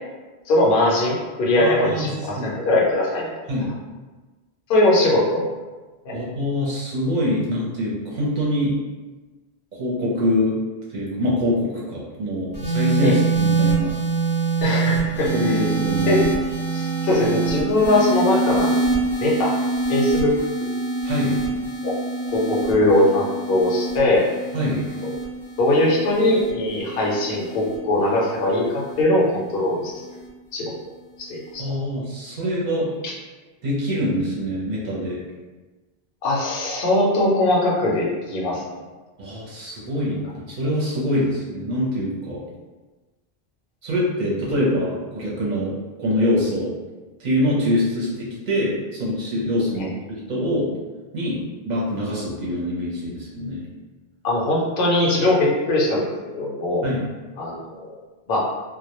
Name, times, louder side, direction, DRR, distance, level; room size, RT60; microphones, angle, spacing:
voice 1, 0.5-3.3 4.7-5.5 6.1-6.2 13.0-13.2 14.6-15.3 16.1-16.2 16.7-18.8 19.2-19.5 19.9-20.3 21.8-22.0 22.3-24.3 25.0-25.1 25.6-29.9 30.5-30.7 31.2-31.6 36.2-38.6 49.8-49.9 54.2-56.1 56.4-56.8 57.4-58.0 58.3-58.5, left 1 dB, 65° left, -4 dB, 0.8 m, -20 dB
voice 2, 1.5-2.5 3.5-3.7 6.1-8.8 9.7-10.6 10.9-13.9 15.3-16.2 21.0-21.4 24.5-24.8 31.6-32.9 33.6-35.2 39.2-42.4 43.8-46.7 47.2-50.7 51.1-51.4 51.7-53.7 56.8-57.0, left 1 dB, 50° right, -6 dB, 0.6 m, -24 dB
sound 1, 12.5-29.0 29.9-30.3, right 3 dB, 10° right, 0.6 m, -25 dB
2.1 x 2.0 x 2.8 m, 1.3 s
omnidirectional pair, 1.1 m